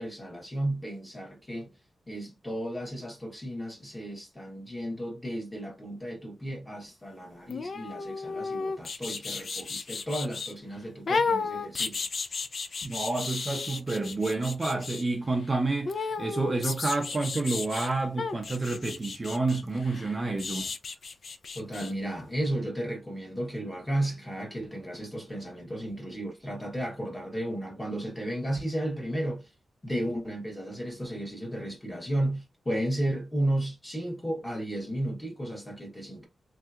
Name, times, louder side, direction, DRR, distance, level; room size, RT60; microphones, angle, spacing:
voice 1, 0.0-1.7 2.1-12.0 21.5-29.5 29.8-36.3, right 1 dB, 15° left, 1.1 m, -33 dB
sound 1, 7.5-10.5 11.1-15.0 15.8-17.9 18.2-21.9 22.2-22.3, left 4 dB, 50° left, 0.3 m, -33 dB
voice 2, 12.8-20.7, right 3 dB, 25° right, 0.5 m, -29 dB
3.3 x 2.8 x 2.4 m
wide cardioid pair, 165°, 0 cm